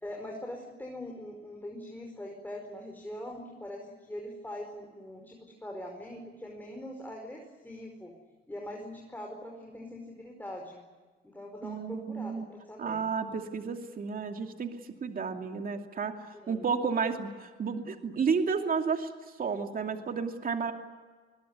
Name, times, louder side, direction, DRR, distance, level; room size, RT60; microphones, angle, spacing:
voice 1, 0.0-8.1 8.5-10.8 11.2-13.1 16.3-17.1, left 1 dB, 10° left, 1 dB, 4.9 m, -42 dB
voice 2, 11.6-12.5 12.8-14.7 15.0-16.1 16.5-19.1 19.4-20.7, right 5 dB, 45° right, 4 dB, 2.6 m, -31 dB
23.0 x 22.0 x 9.7 m, 1.4 s
cardioid pair, 90°, 20 cm